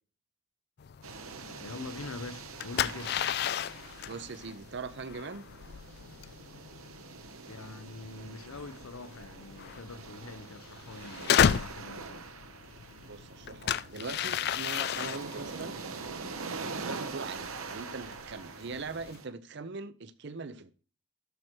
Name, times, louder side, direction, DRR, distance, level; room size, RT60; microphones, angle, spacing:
sound 1, 0.8-19.2, left 8 dB, 50° left, 0.3 m, -34 dB
sound 2, 1.0-19.3, right 4 dB, 75° right, 1.1 m, -44 dB
voice 1, 1.4-3.2 7.5-12.3, left 3 dB, 80° left, 0.7 m, -44 dB
voice 2, 4.0-5.4 13.0-15.8 16.4-20.7, right 4 dB, 55° right, 0.6 m, -41 dB
12.0 x 4.5 x 4.5 m
head